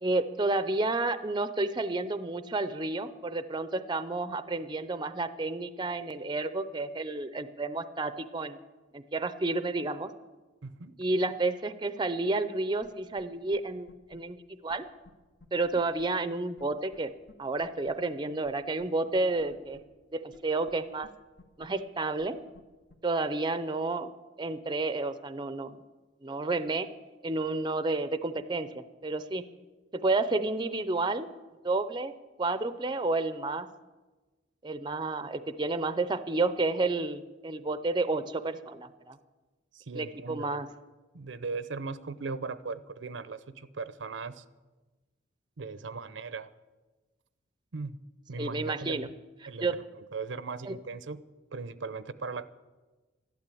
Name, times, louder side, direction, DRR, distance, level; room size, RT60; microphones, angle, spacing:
voice 1, 0.0-8.6 8.9-10.1 11.0-14.4 14.6-14.8 15.5-17.1 17.4-19.8 20.1-21.1 21.6-22.4 23.0-24.1 24.4-25.8 26.2-26.9 27.2-29.5 29.9-31.3 31.6-32.1 32.4-33.7 34.6-39.2 39.9-40.7 48.4-49.1 49.4-49.8 50.7-50.8, right 2 dB, 25° right, 13 dB, 0.6 m, -30 dB
voice 2, 10.6-10.9 39.7-40.6 41.1-44.4 45.6-46.5 47.7-48.0 48.3-49.1 49.5-49.7 50.0-51.2 51.5-52.5, right 4 dB, 80° right, 15 dB, 0.7 m, -38 dB
sound 1, 12.8-12.9 13.2-13.3 13.5-13.6 13.9-14.2 14.7-14.8 15.0-15.1 15.4-16.0 16.6-16.7 16.9-17.0 17.3-17.4 17.6-17.9 18.4-18.5 18.8-18.9 19.1-19.8 20.3-20.4 20.7-20.8 21.0-21.1 21.4-21.7 22.2-22.3 22.5-22.6 22.9-23.0, left 2 dB, 80° left, 1.7 m, -53 dB
12.0 x 12.0 x 8.4 m, 1.2 s
head